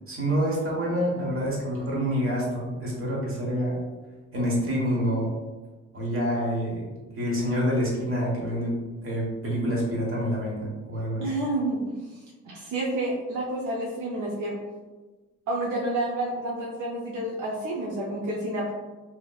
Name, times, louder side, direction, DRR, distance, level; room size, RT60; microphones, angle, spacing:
voice 1, 0.1-3.8 4.3-5.3 5.9-11.3, equal, 45° right, -4 dB, 1.3 m, -27 dB
voice 2, 11.2-14.6 15.5-18.7, right 1 dB, 80° right, -3 dB, 0.6 m, -29 dB
3.0 x 2.8 x 2.3 m, 1.2 s
cardioid pair, 90°, 30 cm